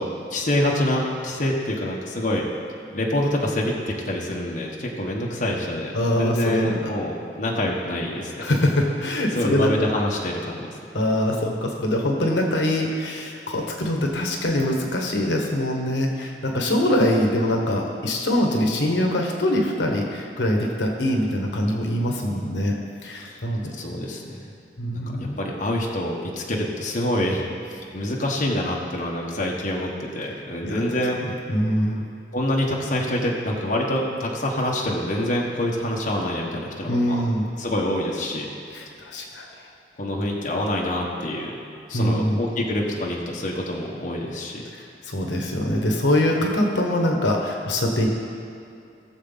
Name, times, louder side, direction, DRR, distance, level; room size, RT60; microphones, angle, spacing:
voice 1, 0.0-2.4 2.9-8.5 9.3-10.7 23.2-23.4 23.7-24.4 24.9-31.2 32.3-37.2 37.6-38.5 40.0-41.5 41.9-44.6, left 1 dB, 45° left, -2 dB, 1.3 m, -26 dB
voice 2, 5.9-6.9 8.4-9.7 10.9-23.7 24.8-25.3 30.6-30.8 31.2-32.0 36.9-37.5 38.7-39.6 41.9-42.4 44.7-48.1, left 1 dB, 80° left, 1 dB, 1.3 m, -23 dB
18.0 x 7.1 x 4.1 m, 2.5 s
head